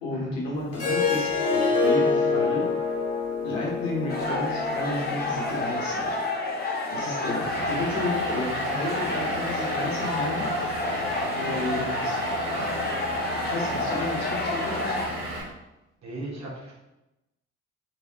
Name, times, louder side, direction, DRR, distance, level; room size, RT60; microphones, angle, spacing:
voice 1, 0.0-2.6 3.4-6.1 6.9-10.5 11.3-12.2 13.4-15.0, left 2 dB, 80° left, -4 dB, 1.0 m, -32 dB
Harp, 0.7-5.9, left 4 dB, 40° left, 1.3 m, -26 dB
sound 1, 4.1-15.1, left 2 dB, 25° left, 0.7 m, -29 dB
Vehicle / Engine, 7.4-15.4, right 1 dB, 75° right, 1.1 m, -34 dB
voice 2, 16.0-16.7, right 1 dB, 45° right, -3 dB, 1.2 m, -37 dB
3.3 x 3.1 x 2.8 m, 0.97 s
figure-of-eight pair, 45°, 37 cm